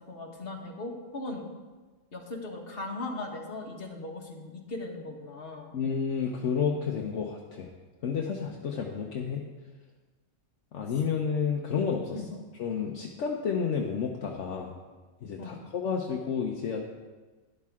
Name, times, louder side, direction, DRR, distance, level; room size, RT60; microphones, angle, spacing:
voice 1, 0.1-1.5 2.1-5.7 12.1-12.3 15.4-15.6, left 2 dB, 45° left, 1 dB, 1.6 m, -38 dB
voice 2, 5.7-7.7 8.0-9.4 10.7-12.2 12.6-14.7 15.2-16.9, left 6 dB, 70° left, 0 dB, 1.2 m, -30 dB
12.0 x 11.0 x 3.6 m, 1.3 s
omnidirectional pair, 1.4 m